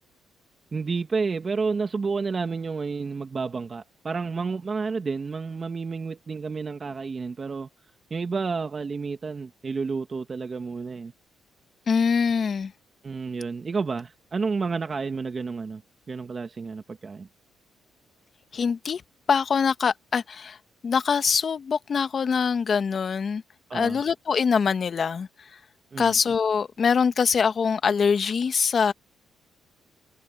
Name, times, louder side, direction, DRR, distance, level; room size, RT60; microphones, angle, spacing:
voice 1, 0.7-7.7 8.1-11.1 13.0-15.8 16.1-17.3 23.7-24.0 25.9-26.2, right 4 dB, 35° right, 1.9 m, -30 dB
voice 2, 11.9-12.7 18.5-19.0 19.3-20.6 20.8-23.4 23.7-25.3 26.0-28.9, left 6 dB, 45° left, 1.4 m, -23 dB
cardioid pair, 90°, 0 cm